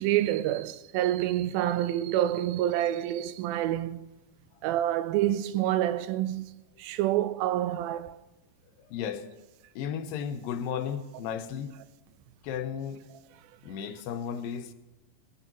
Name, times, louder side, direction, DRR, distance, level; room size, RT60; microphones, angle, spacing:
voice 1, 0.0-4.1 4.6-6.5 6.8-8.2, right 13 dB, 90° right, 2.5 m, -27 dB
voice 2, 8.8-9.4 9.8-11.7 12.4-13.0 13.6-14.7, left 8 dB, 80° left, 2.5 m, -34 dB
21.0 x 15.0 x 3.0 m
omnidirectional pair, 4.1 m